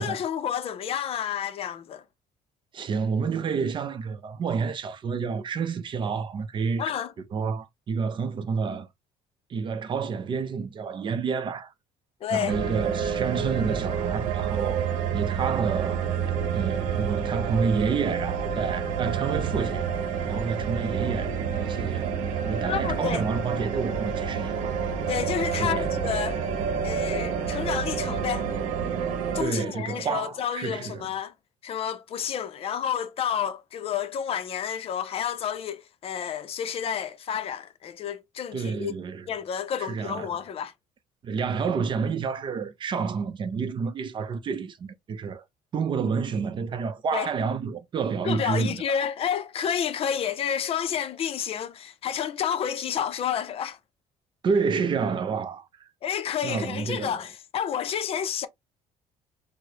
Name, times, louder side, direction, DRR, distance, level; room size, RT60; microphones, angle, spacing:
voice 1, 0.0-2.0 6.8-7.1 12.2-12.6 22.6-23.2 25.1-26.4 26.8-28.5 29.3-31.3 31.6-38.9 39.3-40.7 47.1-47.3 48.2-53.8 56.0-58.5, left 8 dB, 45° left, 0.5 m, -30 dB
voice 2, 2.7-6.9 7.3-8.9 9.5-11.7 12.3-14.8 15.1-16.1 16.5-19.9 20.3-22.1 22.5-24.7 25.6-26.0 29.4-31.1 38.5-39.3 39.8-40.4 41.2-45.4 45.7-49.0 54.4-55.9 56.4-57.2, right 5 dB, 35° right, 0.5 m, -29 dB
sound 1, 12.5-29.4, right 7 dB, 80° right, 0.8 m, -28 dB
4.6 x 2.1 x 2.7 m
cardioid pair, 125°, 13 cm